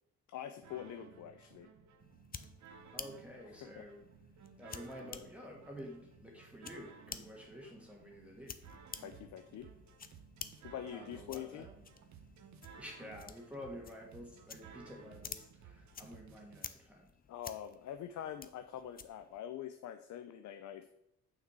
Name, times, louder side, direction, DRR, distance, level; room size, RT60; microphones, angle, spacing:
voice 1, 0.3-1.7 3.6-3.8 9.0-9.7 10.6-11.7 17.3-20.9, left 10 dB, 70° left, 9 dB, 0.6 m, -45 dB
sound 1, 0.6-16.6, right 6 dB, 70° right, 1.0 m, -57 dB
sound 2, 2.0-19.4, left 6 dB, 30° left, 0.6 m, -52 dB
voice 2, 2.9-4.0 4.6-8.6 10.9-11.7 12.8-17.1, left 1 dB, 5° right, -3 dB, 1.7 m, -50 dB
6.8 x 5.9 x 4.6 m, 0.80 s
cardioid pair, 90°, 30 cm